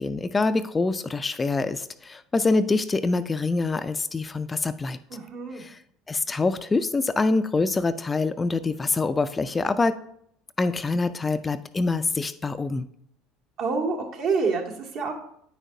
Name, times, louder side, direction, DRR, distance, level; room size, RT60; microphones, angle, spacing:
voice 1, 0.0-5.0 5.5-5.8 6.1-10.0 10.6-12.9, left 3 dB, 20° left, 11 dB, 0.4 m, -25 dB
voice 2, 5.1-5.6 13.6-15.1, right 4 dB, 60° right, -1 dB, 1.8 m, -27 dB
8.8 x 6.1 x 2.7 m, 0.71 s
hypercardioid pair, 80°, 0 cm